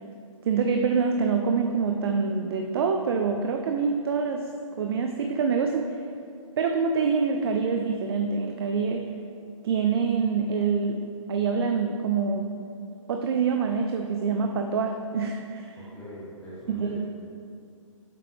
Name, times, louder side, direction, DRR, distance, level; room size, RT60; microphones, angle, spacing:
voice 1, 0.4-4.5 4.8-6.0 6.6-9.1 9.6-12.5 13.1-15.8 16.7-17.0, right 5 dB, 45° right, 4 dB, 0.4 m, -26 dB
voice 2, 15.8-17.0, equal, 5° left, -12 dB, 1.3 m, -42 dB
7.5 x 5.6 x 3.4 m, 2.5 s
figure-of-eight pair, 135°, 17 cm